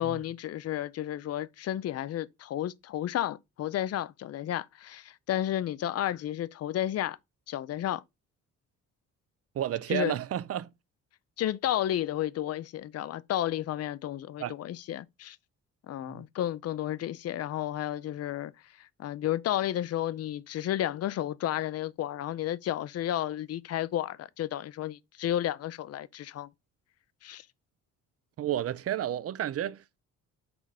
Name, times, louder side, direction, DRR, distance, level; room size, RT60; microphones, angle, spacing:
voice 1, 0.0-7.2 7.5-8.0 9.9-10.1 11.4-15.4 15.9-18.5 18.8-26.5 27.2-27.5, left 12 dB, 55° left, 0.5 m, -32 dB
voice 2, 9.5-10.7 14.4-14.5 16.0-16.2 28.4-30.0, right 11 dB, 50° right, 0.5 m, -32 dB
6.1 x 4.0 x 4.8 m
cardioid pair, 90°, 30 cm